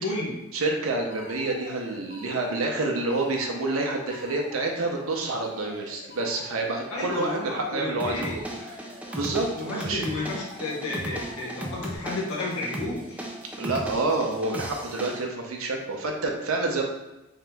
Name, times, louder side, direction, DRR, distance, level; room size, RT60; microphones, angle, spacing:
voice 1, 0.0-0.4 6.9-8.4 9.6-13.2, left 2 dB, 80° left, -4 dB, 0.9 m, -32 dB
voice 2, 0.5-8.7 9.1-10.1 13.6-16.8, right 2 dB, 70° right, 1 dB, 0.6 m, -28 dB
Alarm, 1.1-12.0, left 3 dB, 40° left, 1.2 m, -47 dB
sound 1, 8.0-15.2, right 1 dB, 5° right, 0.3 m, -37 dB
3.5 x 2.9 x 3.4 m, 0.97 s
head